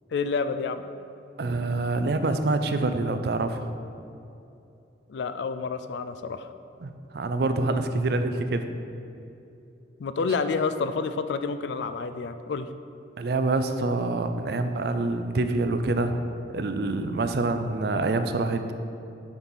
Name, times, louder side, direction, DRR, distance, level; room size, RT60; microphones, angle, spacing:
voice 1, 0.1-0.8 5.1-6.5 10.0-12.7, left 4 dB, 65° left, 10 dB, 0.3 m, -29 dB
voice 2, 1.4-3.7 6.8-8.6 13.2-16.2 16.5-18.7, right 2 dB, 55° right, 8 dB, 0.4 m, -26 dB
7.0 x 4.1 x 5.4 m, 2.7 s
head